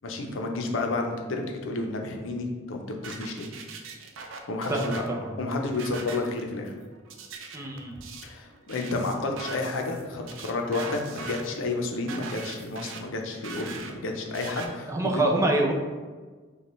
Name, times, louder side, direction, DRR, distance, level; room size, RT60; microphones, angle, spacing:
voice 1, 0.0-3.5 4.5-6.7 8.2-15.2, left 2 dB, 85° left, 3 dB, 0.6 m, -31 dB
sound 1, 3.0-14.7, right 4 dB, 85° right, 0.5 m, -42 dB
voice 2, 4.7-5.3 7.5-7.9 14.9-15.7, right 2 dB, 15° right, 0 dB, 0.5 m, -25 dB
5.2 x 2.3 x 3.1 m, 1.4 s
head